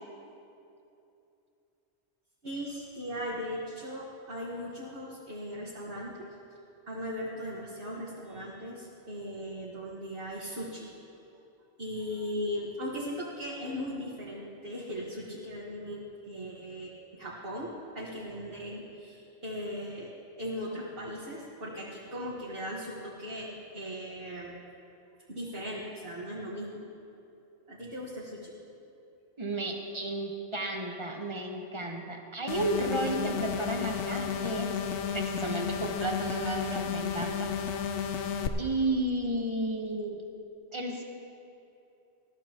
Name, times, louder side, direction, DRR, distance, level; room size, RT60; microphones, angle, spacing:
voice 1, 2.4-6.3 6.9-10.9 11.8-20.1 20.4-24.6 25.3-26.9 27.7-28.5, equal, 50° right, -6 dB, 1.8 m, -38 dB
voice 2, 29.4-34.8 35.1-37.5 38.6-40.2 40.7-41.0, right 1 dB, 25° right, 2 dB, 1.1 m, -32 dB
sound 1, 32.5-38.5, left 7 dB, 75° left, 1.0 m, -32 dB
20.0 x 13.5 x 3.0 m, 2.8 s
omnidirectional pair, 1.2 m